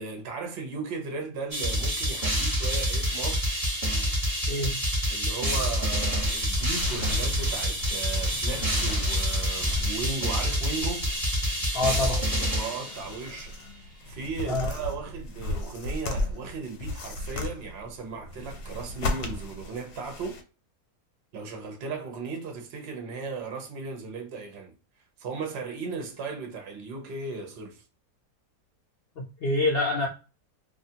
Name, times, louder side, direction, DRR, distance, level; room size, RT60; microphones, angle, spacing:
voice 1, 0.0-3.6 5.1-11.1 12.0-13.6 14.1-20.4 21.3-24.7 25.2-27.8, right 4 dB, 55° right, 0.7 m, -36 dB
sound 1, 1.5-13.4, equal, 25° right, 1.0 m, -27 dB
voice 2, 4.5-4.8 11.7-12.2 14.5-14.7 29.2-30.1, left 2 dB, 70° left, 0.5 m, -26 dB
sound 2, 5.9-20.4, left 2 dB, 85° left, 1.1 m, -36 dB
2.4 x 2.4 x 2.7 m
omnidirectional pair, 1.7 m